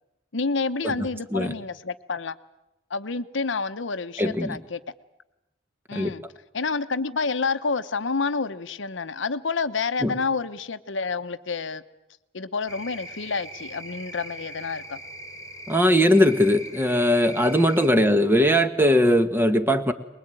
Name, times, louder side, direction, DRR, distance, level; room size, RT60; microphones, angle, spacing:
voice 1, 0.3-2.4 2.9-4.8 5.9-6.2 6.5-11.8 12.3-15.0 18.0-18.2, left 4 dB, 70° left, 12 dB, 0.9 m, -29 dB
voice 2, 4.2-4.6 5.9-6.1 10.0-10.1 15.7-19.9, equal, 10° right, 9 dB, 1.4 m, -20 dB
sound 1, 12.7-17.9, right 1 dB, 20° left, 1.9 m, -41 dB
23.0 x 21.5 x 9.0 m, 0.92 s
head